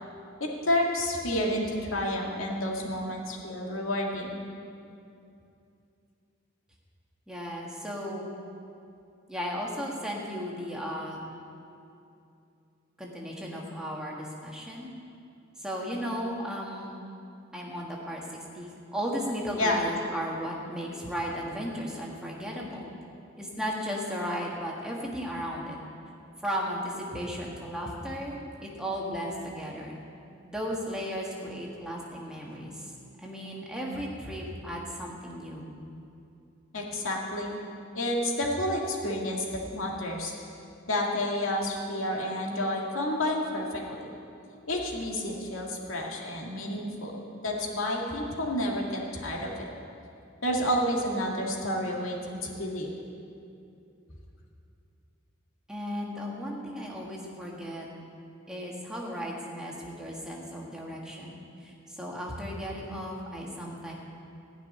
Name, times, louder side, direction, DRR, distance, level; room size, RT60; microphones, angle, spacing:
voice 1, 0.4-4.4 19.6-19.8 36.7-37.6 37.9-40.3 40.9-44.1 44.7-47.1 47.4-49.7 50.4-52.9, left 1 dB, 85° left, -1 dB, 2.1 m, -30 dB
voice 2, 7.3-8.3 9.3-11.2 13.0-14.9 15.6-17.0 17.5-22.9 23.4-25.8 26.4-30.0 30.4-32.9 33.2-35.7 55.7-57.9 58.5-63.9, equal, 5° right, -3 dB, 1.8 m, -35 dB
16.0 x 6.2 x 9.8 m, 2.6 s
head